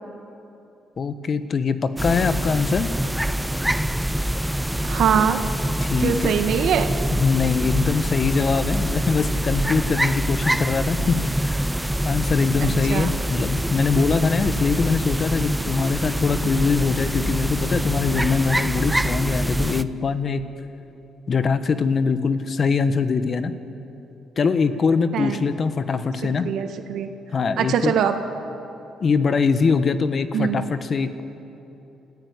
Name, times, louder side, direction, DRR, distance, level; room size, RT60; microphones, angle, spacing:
voice 1, 1.0-2.9 5.8-6.3 7.1-11.6 12.0-20.4 21.3-23.5 24.4-26.5 27.3-27.9 29.0-31.2, left 5 dB, 45° left, 11 dB, 1.4 m, -22 dB
sound 1, 2.0-19.8, right 1 dB, 5° right, 0.7 m, -25 dB
voice 2, 4.8-5.4 6.0-6.9 12.6-13.1 25.1-25.4 26.4-27.1 27.6-28.2 30.3-30.6, right 8 dB, 75° right, 7 dB, 1.7 m, -22 dB
28.0 x 14.5 x 9.8 m, 3.0 s
cardioid pair, 90°, 0 cm